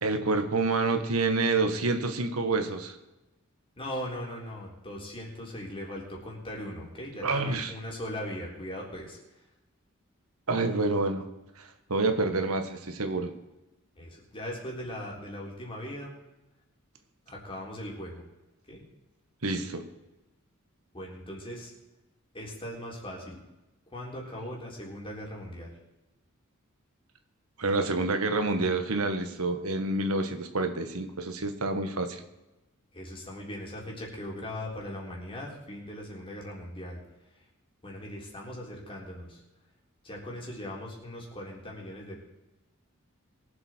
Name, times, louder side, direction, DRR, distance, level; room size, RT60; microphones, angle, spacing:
voice 1, 0.0-2.9 7.2-7.7 10.5-11.2 11.6-13.3 19.4-19.8 27.6-32.2, right 3 dB, 90° right, 7 dB, 1.6 m, -28 dB
voice 2, 3.8-9.2 14.0-16.1 17.3-18.2 18.7-18.8 20.9-21.7 22.3-23.4 23.9-25.7 32.9-37.0 37.8-39.4 40.0-42.2, left 1 dB, 25° left, -2 dB, 3.8 m, -39 dB
22.5 x 8.0 x 4.6 m, 1.0 s
head